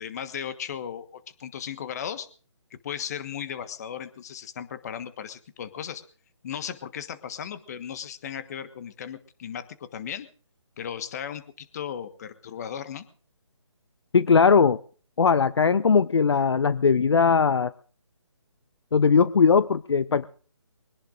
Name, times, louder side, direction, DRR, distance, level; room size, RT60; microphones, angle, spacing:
voice 1, 0.0-2.3 2.8-6.0 6.4-10.3 10.8-13.0, left 8 dB, 35° left, 11 dB, 1.4 m, -36 dB
voice 2, 14.1-14.8 15.2-17.7 18.9-20.3, left 5 dB, 60° left, 15 dB, 0.6 m, -19 dB
24.0 x 17.5 x 2.5 m, 0.41 s
figure-of-eight pair, 150°, 16 cm